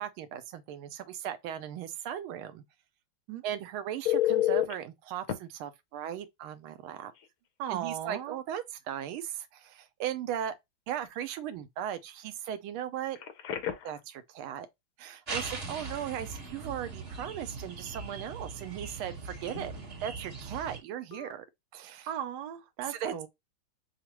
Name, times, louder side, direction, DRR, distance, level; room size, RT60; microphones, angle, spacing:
voice 1, 0.0-2.6 3.4-7.1 7.7-10.5 10.9-13.2 13.8-14.7 15.0-19.7 20.0-21.4 21.7-22.1 22.9-23.1, right 10 dB, 90° right, 1.5 m, -37 dB
Telephone, 4.0-4.7 5.3-5.4 7.1-7.3 7.7-7.9 13.1-14.0 21.1-21.3, left 13 dB, 75° left, 0.8 m, -29 dB
voice 2, 7.6-8.4 22.1-23.3, right 10 dB, 65° right, 1.1 m, -36 dB
sound 1, 15.3-20.8, right 4 dB, 35° right, 1.4 m, -40 dB
5.8 x 2.1 x 2.9 m
omnidirectional pair, 2.3 m